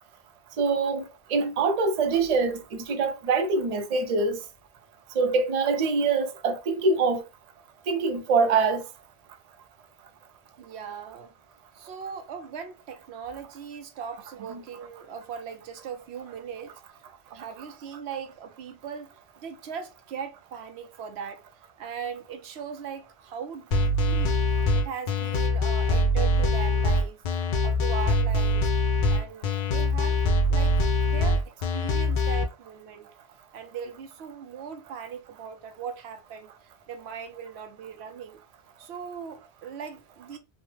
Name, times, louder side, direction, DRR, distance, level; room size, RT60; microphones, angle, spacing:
voice 1, 0.6-4.4 5.2-7.2 7.9-8.8 14.5-14.6, right 4 dB, 50° right, 0.5 m, -24 dB
voice 2, 10.6-11.3 11.7-16.8 17.3-21.4 21.8-24.5 24.7-27.2 27.6-28.7 29.1-30.7 31.0-31.4 31.7-33.1 33.5-38.4 38.8-40.4, right 7 dB, 85° right, 0.9 m, -39 dB
sound 1, 23.7-32.4, left 1 dB, 60° left, 0.6 m, -23 dB
3.1 x 2.0 x 3.0 m
omnidirectional pair, 1.1 m